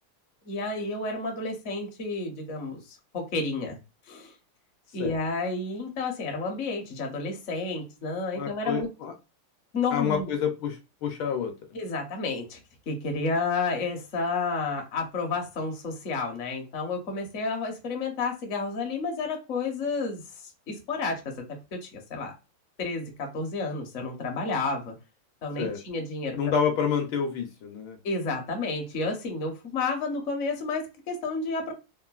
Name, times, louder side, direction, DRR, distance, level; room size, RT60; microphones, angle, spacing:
voice 1, 0.4-3.8 4.1-4.3 4.9-8.9 9.7-10.3 11.7-12.6 12.9-20.2 20.7-21.3 21.7-22.3 22.8-24.9 25.4-26.4 28.0-31.7, left 3 dB, 55° left, 0.8 m, -31 dB
voice 2, 8.3-9.1 9.9-11.5 25.6-25.8 26.4-28.0, left 7 dB, 75° left, 1.4 m, -28 dB
3.6 x 2.2 x 2.3 m
omnidirectional pair, 2.3 m